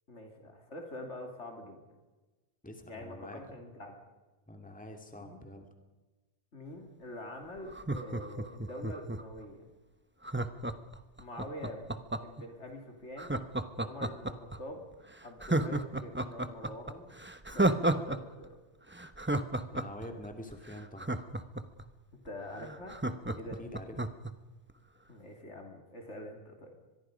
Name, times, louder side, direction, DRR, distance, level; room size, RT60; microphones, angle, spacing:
voice 1, 0.1-1.8 2.8-4.0 5.2-5.4 6.5-9.7 11.2-11.9 12.2-13.3 13.8-14.9 15.2-17.1 17.5-18.6 22.2-23.0 23.3-23.7 25.1-26.7, left 1 dB, 85° left, 2 dB, 3.4 m, -45 dB
voice 2, 2.6-3.4 4.5-5.7 19.7-21.1 23.6-24.0, left 1 dB, 5° left, 4 dB, 2.3 m, -46 dB
Laughter, 7.7-9.4 10.2-12.4 13.2-14.6 14.9-15.0 15.4-18.2 18.4-18.5 18.9-21.8 22.3-22.4 22.6-24.3 24.7-24.8, right 2 dB, 10° right, 0.9 m, -32 dB
24.5 x 21.5 x 5.2 m, 1.2 s
omnidirectional pair, 1.2 m